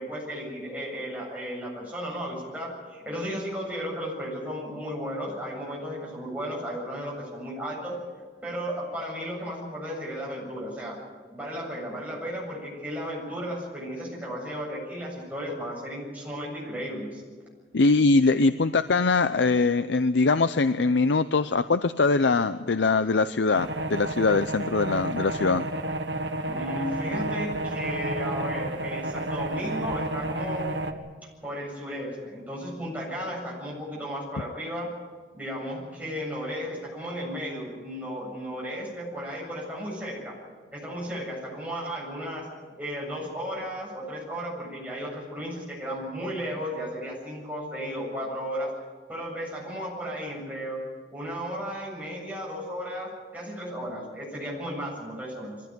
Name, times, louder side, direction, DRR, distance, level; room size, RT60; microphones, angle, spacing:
voice 1, 0.0-8.0 8.4-11.0 11.3-17.2 26.4-30.7 31.2-34.9 35.3-40.4 40.7-42.5 42.8-48.7 49.1-50.8 51.1-55.6, equal, 10° right, -4 dB, 7.8 m, -34 dB
voice 2, 17.7-25.6, left 3 dB, 80° left, 12 dB, 0.6 m, -22 dB
sound 1, 23.5-30.9, right 1 dB, 85° right, 1.6 m, -31 dB
23.0 x 15.5 x 9.5 m, 1.5 s
head